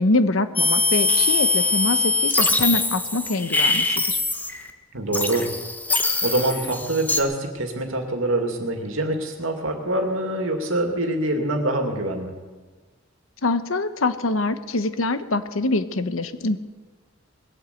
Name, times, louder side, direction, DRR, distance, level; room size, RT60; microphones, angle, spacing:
voice 1, 0.0-4.2 13.4-16.6, left 2 dB, 90° left, 11 dB, 1.0 m, -24 dB
sound 1, 0.6-4.7 5.1-7.2, left 3 dB, 10° left, 1.1 m, -22 dB
voice 2, 4.9-5.5 5.9-12.3, right 1 dB, 85° right, 4 dB, 2.4 m, -25 dB
20.5 x 8.3 x 8.4 m, 1.4 s
head